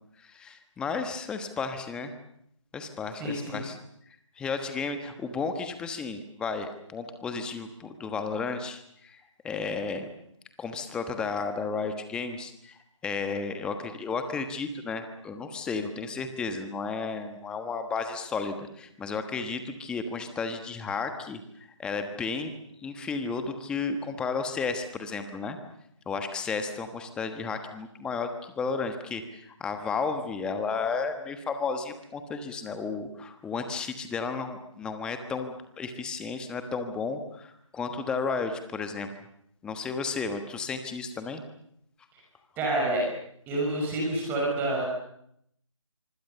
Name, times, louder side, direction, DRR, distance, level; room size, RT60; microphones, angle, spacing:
voice 1, 0.2-2.1 2.7-3.8 4.1-10.1 10.6-21.4 21.8-22.5 22.8-25.6 26.1-39.1 39.6-41.4, left 4 dB, 5° left, 7 dB, 1.3 m, -33 dB
voice 2, 3.2-3.6 42.6-43.0 43.5-44.9, right 1 dB, 10° right, -1 dB, 5.8 m, -28 dB
25.0 x 24.5 x 6.9 m, 0.72 s
figure-of-eight pair, 160°, 17 cm